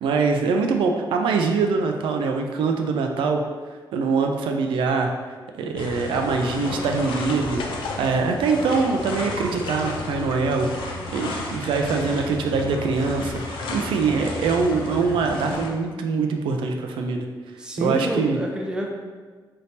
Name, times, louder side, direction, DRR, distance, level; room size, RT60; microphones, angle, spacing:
voice 1, 0.0-3.4 3.9-5.1 5.5-10.7 11.1-17.3 17.8-18.4, right 4 dB, 85° right, 4 dB, 0.3 m, -23 dB
sound 1, 5.8-15.7, left 2 dB, 90° left, 0.5 m, -32 dB
voice 2, 17.6-18.9, right 1 dB, 10° right, 0 dB, 0.4 m, -27 dB
3.4 x 2.7 x 2.7 m, 1.4 s
cardioid pair, 135°, 8 cm